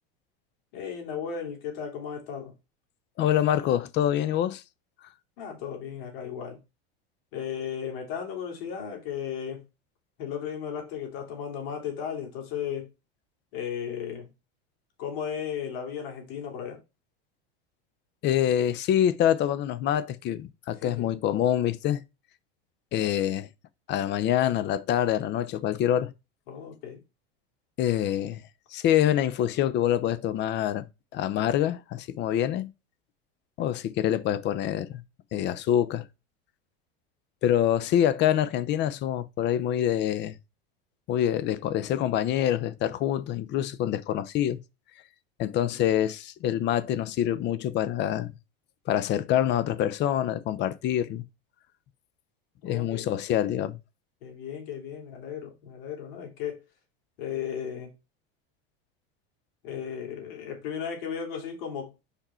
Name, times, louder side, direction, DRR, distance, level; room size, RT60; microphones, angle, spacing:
voice 1, 0.7-2.5 5.4-6.6 7.3-9.6 10.2-12.9 13.5-14.3 15.0-16.8 20.8-21.1 26.5-27.0 52.6-53.1 54.2-56.6 57.2-57.9 59.6-61.9, left 8 dB, 70° left, 3.2 m, -35 dB
voice 2, 3.2-4.6 18.2-22.0 22.9-23.5 23.9-26.1 27.8-28.4 28.7-30.9 31.1-32.7 33.6-35.0 35.3-36.0 37.4-40.4 41.1-44.6 45.4-48.3 48.9-51.2 52.6-53.8, left 11 dB, 35° left, 0.6 m, -26 dB
5.2 x 4.9 x 4.3 m
supercardioid pair, 135°, 30 cm